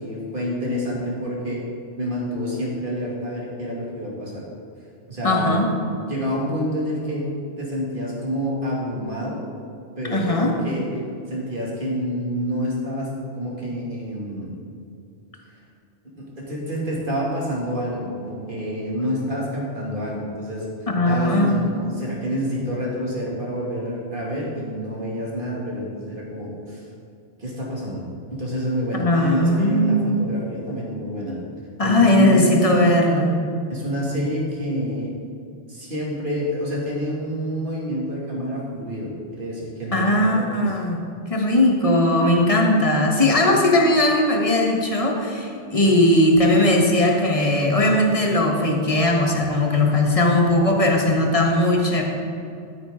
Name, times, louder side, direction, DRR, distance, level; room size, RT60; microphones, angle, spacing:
voice 1, 0.0-1.6 2.0-4.4 5.1-5.6 6.1-7.3 7.6-9.4 10.0-10.9 11.3-14.5 16.2-20.7 21.0-26.9 27.4-28.0 28.3-31.4 31.8-32.6 33.7-35.1 35.7-40.8, equal, 50° right, -4 dB, 2.5 m, -28 dB
voice 2, 5.2-5.7 10.0-10.5 20.9-21.7 29.0-30.2 31.8-33.3 39.9-41.0 41.3-52.0, left 1 dB, 30° left, 1 dB, 1.3 m, -18 dB
13.5 x 8.8 x 3.7 m, 2.5 s
omnidirectional pair, 1.2 m